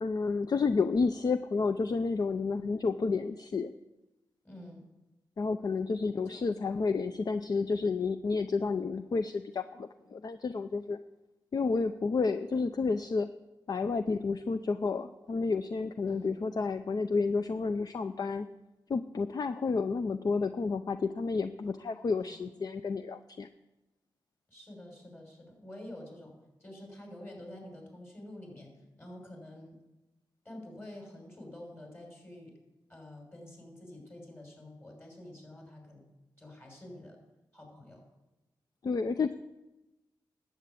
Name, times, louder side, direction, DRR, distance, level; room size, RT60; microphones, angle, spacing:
voice 1, 0.0-3.7 5.4-11.0 11.5-13.3 13.7-18.5 18.9-23.5 38.8-39.4, left 4 dB, 50° left, 11 dB, 0.5 m, -30 dB
voice 2, 4.4-4.8 6.2-6.4 16.1-16.4 22.1-22.6 24.5-26.3 26.6-28.7 29.0-29.8 30.4-32.5 32.9-36.0 36.4-37.2 37.5-38.0, left 1 dB, 25° left, 0 dB, 5.9 m, -48 dB
11.5 x 8.0 x 8.4 m, 1.0 s
cardioid pair, 60°, 8 cm